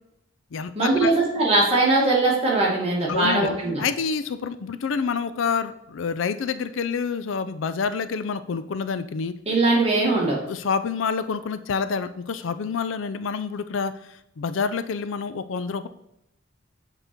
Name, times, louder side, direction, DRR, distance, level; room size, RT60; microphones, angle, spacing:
voice 1, 0.7-3.8 9.5-10.4, right 2 dB, 30° right, -4 dB, 2.1 m, -21 dB
voice 2, 3.1-3.5 3.8-9.3 10.5-13.9 14.4-15.9, left 5 dB, 70° left, 12 dB, 0.4 m, -27 dB
7.9 x 3.9 x 4.5 m, 0.78 s
head